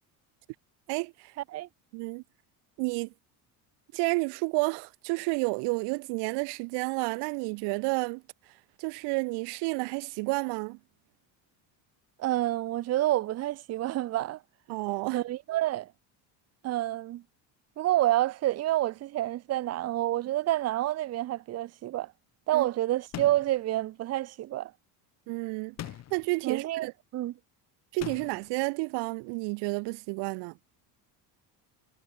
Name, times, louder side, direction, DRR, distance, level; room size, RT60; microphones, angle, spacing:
voice 1, 0.9-1.3 1.9-2.2 2.8-3.1 3.9-8.2 8.8-10.8 14.7-15.2 22.5-22.7 25.3-26.9 27.9-30.5, right 29 dB, 75° right, 1.0 m, -31 dB
voice 2, 12.2-14.4 15.1-15.9 16.6-17.2 17.8-22.1 22.5-24.7 26.4-27.3, right 15 dB, 35° right, 0.9 m, -28 dB
sound 1, 23.1-23.6 25.8-26.3 28.0-28.5, left 12 dB, 40° left, 2.1 m, -40 dB
cardioid pair, 165°, 41 cm